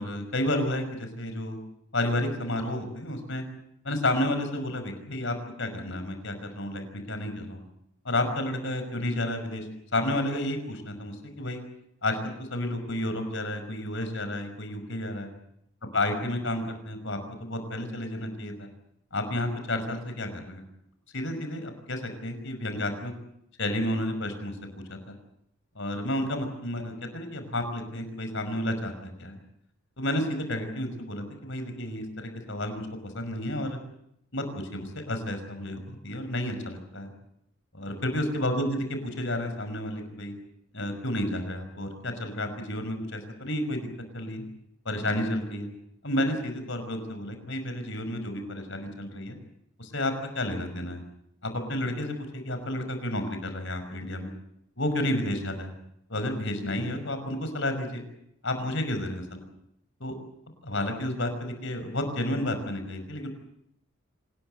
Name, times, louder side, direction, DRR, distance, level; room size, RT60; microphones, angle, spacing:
voice 1, 0.0-1.6 1.9-3.4 3.8-7.7 8.0-9.7 9.9-11.6 12.0-15.3 15.9-18.7 19.1-20.6 21.1-23.1 23.6-25.1 25.8-29.4 30.0-32.9 33.1-33.8 34.3-37.1 37.7-40.3 40.7-43.9 44.1-44.4 44.9-45.7 46.0-49.4 49.8-51.0 51.4-54.3 54.8-55.7 56.1-58.0 58.4-59.4 60.0-60.1 60.6-63.3, left 1 dB, 60° left, 7 dB, 5.6 m, -31 dB
27.0 x 20.0 x 8.0 m, 0.76 s
head